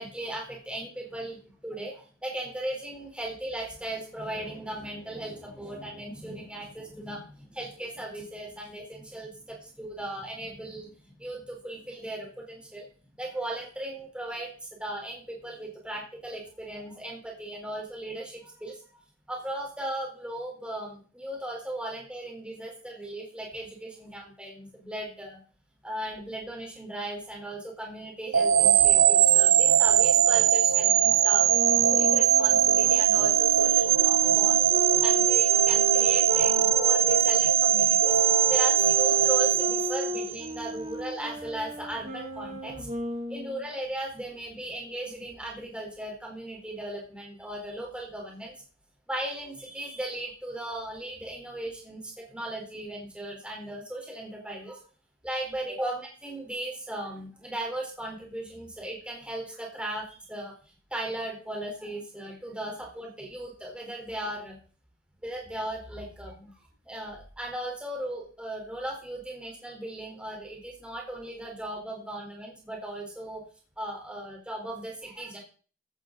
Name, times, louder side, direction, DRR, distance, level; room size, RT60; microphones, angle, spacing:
voice 1, 0.0-12.9 13.2-19.0 19.3-25.4 25.8-31.5 31.9-34.6 35.0-38.2 38.5-42.9 43.3-48.5 49.1-54.8 55.2-60.5 60.9-64.6 65.2-66.5 66.8-73.4 73.8-75.4, right 1 dB, 5° right, -1 dB, 4.0 m, -37 dB
sound 1, 28.3-40.5, right 9 dB, 80° right, 0.7 m, -21 dB
sound 2, 31.5-37.3 38.0-43.6, right 1 dB, 35° right, 2.4 m, -35 dB
14.5 x 12.0 x 4.0 m, 0.40 s
head